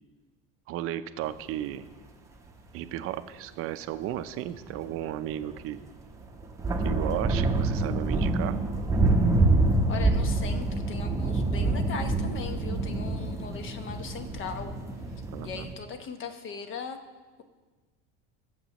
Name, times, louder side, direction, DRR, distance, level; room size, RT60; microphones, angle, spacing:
voice 1, 0.7-1.8 2.7-5.8 6.8-8.6 15.3-15.7, right 12 dB, 45° right, 11 dB, 0.6 m, -34 dB
sound 1, 4.5-4.6 4.8-5.0 5.3-5.8 6.3-15.7, right 2 dB, 10° right, 0.9 m, -26 dB
voice 2, 9.9-14.7 15.4-17.0, left 6 dB, 40° left, 7 dB, 1.1 m, -38 dB
19.5 x 7.4 x 3.0 m, 1.4 s
supercardioid pair, 130°, 32 cm